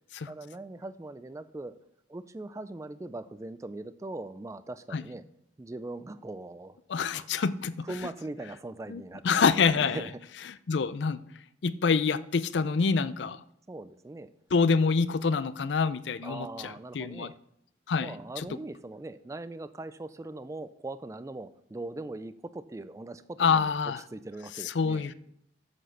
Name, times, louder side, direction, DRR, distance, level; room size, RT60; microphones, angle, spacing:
voice 1, 0.3-1.8 2.1-5.2 5.6-6.8 7.1-7.3 7.8-9.5 9.7-10.1 13.7-14.3 16.2-17.4 18.0-25.1, right 2 dB, 15° right, 13 dB, 0.3 m, -40 dB
voice 2, 6.9-7.9 8.9-10.0 10.7-11.2 11.6-13.4 14.5-17.3 17.9-18.5 23.4-24.0 24.8-25.1, left 5 dB, 80° left, 16 dB, 0.5 m, -26 dB
7.6 x 6.1 x 6.5 m, 0.73 s
head